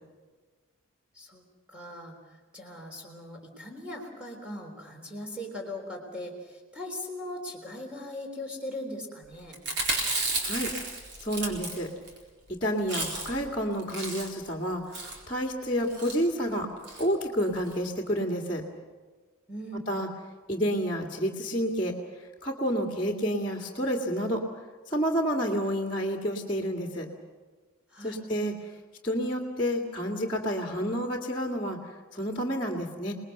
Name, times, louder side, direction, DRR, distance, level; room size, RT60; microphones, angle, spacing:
voice 1, 1.1-9.6 19.5-19.9 27.9-28.3, left 1 dB, 5° right, 0 dB, 3.7 m, -40 dB
Chewing mastication, 9.5-12.2 12.5-12.6 12.8-13.5 13.8-14.5 14.9-15.2 15.9-16.2 16.8-17.1 17.4-17.5 17.7-17.8, right 2 dB, 50° right, 4.2 m, -32 dB
voice 2, 10.4-10.7 11.2-11.9 12.5-14.8 15.3-16.7 17.0-18.6 19.9-20.1 20.5-21.9 22.4-24.4 24.9-27.1 28.0-28.5 29.0-33.1, equal, 25° left, -3 dB, 2.0 m, -29 dB
29.0 x 20.0 x 6.7 m, 1.4 s
head